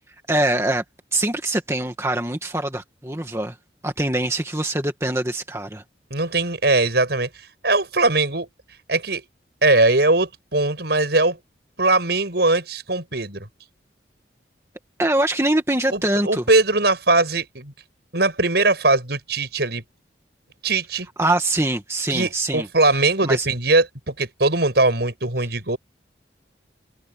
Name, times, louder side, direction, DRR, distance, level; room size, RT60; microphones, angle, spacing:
voice 1, 0.3-0.8 1.1-3.6 3.8-5.8 15.0-16.4 21.2-22.7 23.2-23.5, right 1 dB, 15° right, 1.9 m, -23 dB
voice 2, 6.1-7.3 7.6-8.5 8.9-9.2 9.6-11.4 11.8-13.5 15.9-17.7 18.1-19.8 20.6-21.1 22.1-25.8, right 2 dB, 65° right, 5.7 m, -20 dB
head